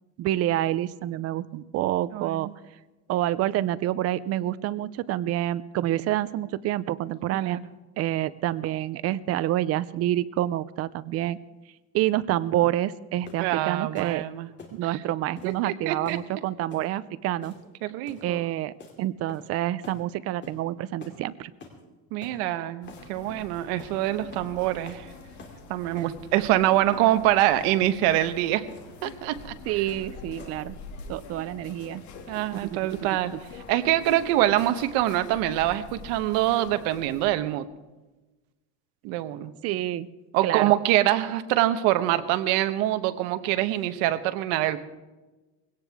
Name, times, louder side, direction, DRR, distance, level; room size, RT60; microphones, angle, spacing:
voice 1, 0.2-2.5 3.1-7.6 8.0-11.4 11.9-14.2 14.7-17.5 18.2-21.5 29.7-30.8 31.1-32.0 32.5-33.4 39.6-40.1 40.4-40.7, right 13 dB, 40° right, 17 dB, 0.5 m, -28 dB
voice 2, 2.1-2.5 7.3-7.6 13.4-14.5 15.4-16.2 17.8-18.4 22.1-25.1 25.7-28.7 29.0-29.5 32.3-33.3 33.7-37.7 39.0-39.5 40.3-44.8, right 14 dB, 80° right, 11 dB, 1.1 m, -25 dB
sound 1, 13.3-13.5 14.0-14.2 14.6-14.8 15.4-15.6 16.1-16.3 16.7-16.9 17.4-17.7 18.1-18.3 18.8-19.0 19.3-19.6 19.8-20.0 20.4-20.6 21.0-21.2 21.6-21.8 22.2-22.4 22.9-23.1 23.8-24.0 24.3-24.5 24.9-25.1 25.4-25.6 26.0-26.5 26.9-27.1 27.5-27.7 28.1-28.3 28.7-28.9 29.3-29.5 29.9-30.1 30.4-30.7, left 4 dB, 30° left, 2.7 m, -47 dB
sound 2, 22.8-37.3, left 4 dB, 45° left, 2.3 m, -45 dB
20.5 x 17.0 x 3.5 m, 1.2 s
cardioid pair, 160°, 38 cm